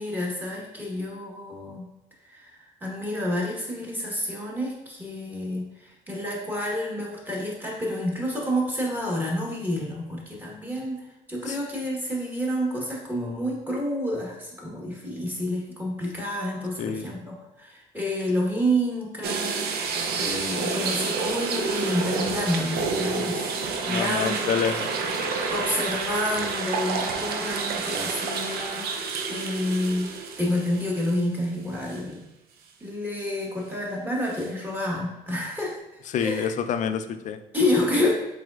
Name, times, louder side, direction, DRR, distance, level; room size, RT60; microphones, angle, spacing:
voice 1, 0.0-1.8 2.2-23.5 23.9-24.6 25.5-32.2 32.8-35.8 36.2-36.5 37.5-38.1, left 1 dB, 10° right, -3 dB, 1.2 m, -29 dB
voice 2, 16.8-17.1 23.9-24.9 36.1-37.4, left 7 dB, 45° left, 10 dB, 0.4 m, -27 dB
sound 1, 19.2-31.4 31.9-32.0 34.3-34.5, right 4 dB, 70° right, 0.6 m, -29 dB
4.8 x 4.0 x 2.3 m, 0.92 s
cardioid pair, 110°, 17 cm